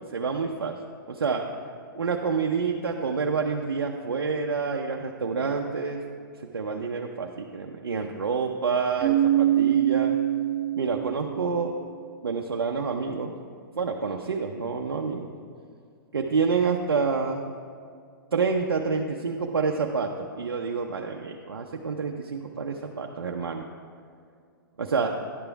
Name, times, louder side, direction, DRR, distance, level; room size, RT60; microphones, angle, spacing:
voice 1, 0.1-0.8 1.1-1.5 1.9-6.0 6.5-10.1 10.8-11.7 12.2-13.3 13.7-15.3 16.1-17.5 18.3-23.6 24.8-25.2, right 5 dB, 90° right, 1 dB, 0.6 m, -28 dB
Keyboard (musical), 9.0-11.6, right 12 dB, 40° right, 0.7 m, -24 dB
11.0 x 6.8 x 4.5 m, 2.3 s
hypercardioid pair, 125°, 12 cm